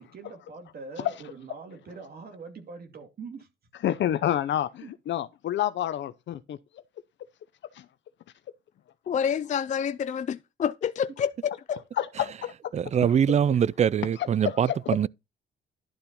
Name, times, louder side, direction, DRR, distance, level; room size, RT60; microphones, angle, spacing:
voice 1, 0.0-3.5 4.8-4.9 11.7-12.1, right 4 dB, 50° right, 2.5 m, -43 dB
voice 2, 3.8-6.6 7.8-7.9 12.0-12.3 14.2-15.1, left 11 dB, 65° left, 0.8 m, -28 dB
voice 3, 9.1-11.8, left 8 dB, 40° left, 0.4 m, -28 dB
voice 4, 12.7-15.1, right 8 dB, 35° right, 0.4 m, -23 dB
11.5 x 4.3 x 5.4 m
cardioid pair, 90°, 20 cm